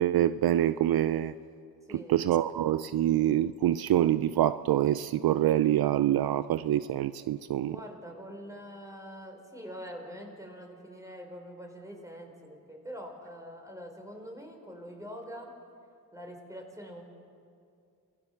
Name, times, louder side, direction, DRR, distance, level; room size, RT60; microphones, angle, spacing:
voice 1, 0.0-1.3 2.1-7.8, right 12 dB, 70° right, 15 dB, 0.6 m, -25 dB
voice 2, 7.6-15.6 16.1-17.0, equal, 10° right, 2 dB, 5.4 m, -44 dB
27.5 x 17.5 x 7.2 m, 2.4 s
cardioid pair, 70°, 38 cm